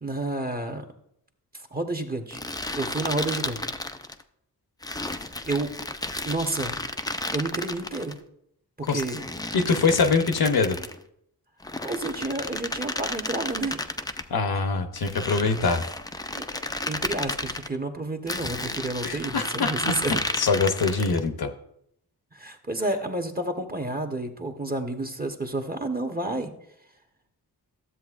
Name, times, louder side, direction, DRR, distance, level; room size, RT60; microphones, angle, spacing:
voice 1, 0.0-0.8 1.5-2.4 2.7-3.7 5.4-5.7 6.2-6.8 7.3-8.1 8.8-9.2 11.8-13.8 16.3-20.2 22.3-26.5, right 2 dB, 20° right, 4 dB, 1.1 m, -30 dB
sound 1, 2.3-4.2 4.8-8.1 8.9-11.0 11.6-14.3 15.0-17.7 18.3-21.2, left 2 dB, 10° left, 0.4 m, -33 dB
voice 2, 9.5-10.8 14.3-15.8 19.0-19.9 20.4-21.5, left 4 dB, 65° left, 7 dB, 0.8 m, -23 dB
12.5 x 7.4 x 2.4 m, 0.73 s
cardioid pair, 55°, 40 cm